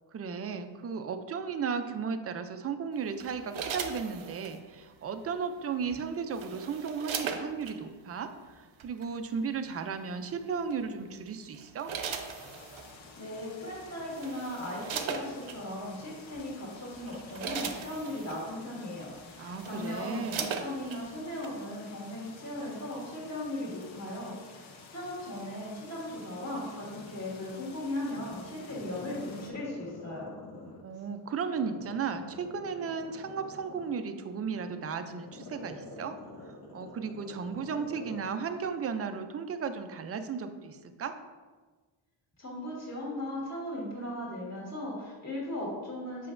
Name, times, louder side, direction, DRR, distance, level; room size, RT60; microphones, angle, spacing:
voice 1, 0.1-8.3 8.6-11.9 19.4-20.6 30.8-41.2, right 6 dB, 35° right, 8 dB, 0.4 m, -35 dB
sound 1, 3.2-4.6 5.9-7.8 8.8-9.0 10.7-11.0 11.5-12.9 13.7-13.8 14.1-15.6 16.3-16.5 16.9-18.4 19.1-19.2 19.5-21.0 21.4-21.5, right 6 dB, 75° right, 0.7 m, -38 dB
sound 2, 12.1-29.5, left 4 dB, 70° left, 0.9 m, -52 dB
voice 2, 13.2-30.3 42.4-46.3, left 1 dB, 35° left, -5 dB, 1.7 m, -38 dB
Growling, 25.9-27.6 28.0-31.0 31.5-38.3 38.6-38.7, left 2 dB, 50° left, 1.4 m, -47 dB
7.7 x 5.7 x 2.5 m, 1.4 s
wide cardioid pair, 155°, 48 cm